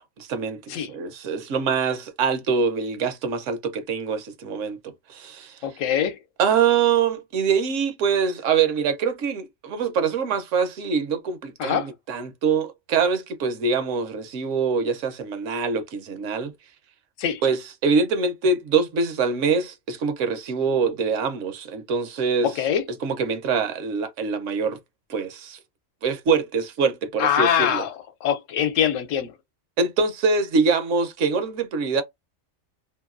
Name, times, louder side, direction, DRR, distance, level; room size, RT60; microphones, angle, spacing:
voice 1, 0.2-4.8 5.1-5.6 6.4-16.5 17.4-22.5 23.0-24.8 25.1-25.6 26.0-27.8 29.8-32.0, right 5 dB, 70° right, 1.0 m, -24 dB
voice 2, 5.6-6.2 11.6-11.9 17.2-17.4 22.4-22.8 27.2-27.9 28.2-29.3, left 9 dB, 70° left, 1.0 m, -23 dB
2.8 x 2.6 x 2.5 m
omnidirectional pair, 1.4 m